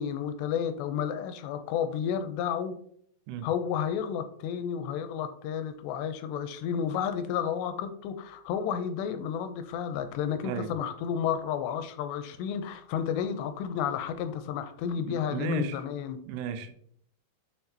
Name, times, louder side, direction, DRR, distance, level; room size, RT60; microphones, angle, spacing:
voice 1, 0.0-2.7 3.4-16.2, left 8 dB, 90° left, 9 dB, 2.8 m, -31 dB
voice 2, 15.0-15.8 16.3-16.7, right 5 dB, 90° right, 8 dB, 3.0 m, -34 dB
6.6 x 5.9 x 2.8 m, 0.64 s
omnidirectional pair, 4.9 m